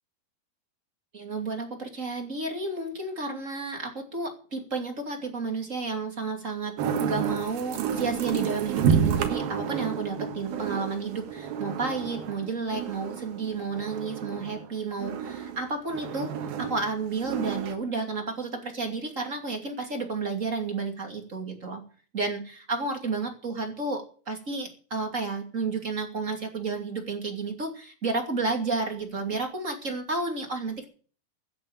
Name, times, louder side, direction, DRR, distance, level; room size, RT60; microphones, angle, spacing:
voice 1, 1.1-16.3 16.6-21.8 22.1-30.8, right 3 dB, 25° right, 4 dB, 2.4 m, -31 dB
sound 1, 6.8-14.7 15.0-17.7, right 7 dB, 70° right, 3.2 m, -30 dB
15.0 x 8.7 x 9.0 m, 0.41 s
omnidirectional pair, 4.5 m